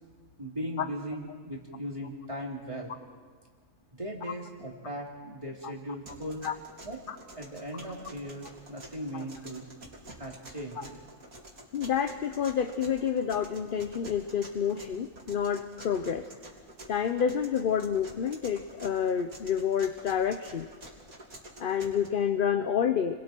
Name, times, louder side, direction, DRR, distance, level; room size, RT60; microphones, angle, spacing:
voice 1, 0.4-3.0 4.0-6.5 6.8-7.0 7.4-9.6 10.2-11.0, equal, 20° right, -2 dB, 3.4 m, -38 dB
sound 1, 6.1-22.1, right 1 dB, 85° right, 3.4 m, -49 dB
voice 2, 11.7-16.3 16.9-20.7 21.6-23.2, left 8 dB, 50° left, 9 dB, 0.7 m, -29 dB
30.0 x 22.5 x 4.5 m, 1.5 s
omnidirectional pair, 1.4 m